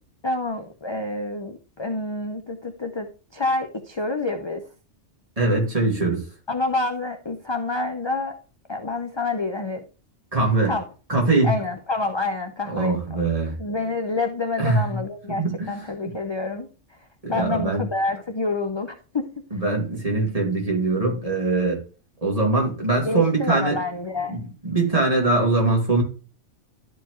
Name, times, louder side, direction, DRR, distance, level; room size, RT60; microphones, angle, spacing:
voice 1, 0.2-3.1 3.3-4.6 6.5-8.4 8.7-9.8 10.6-10.8 11.4-13.2 13.6-17.0 17.3-19.3 23.0-24.4, left 2 dB, 30° left, 5 dB, 0.6 m, -28 dB
voice 2, 5.4-6.2 10.3-10.7 11.1-11.6 12.7-13.6 14.6-15.0 15.4-15.8 17.2-17.8 19.5-21.8 22.2-23.7 24.3-26.0, right 3 dB, 30° right, -1 dB, 2.5 m, -22 dB
12.0 x 4.5 x 3.1 m, 0.35 s
omnidirectional pair, 1.2 m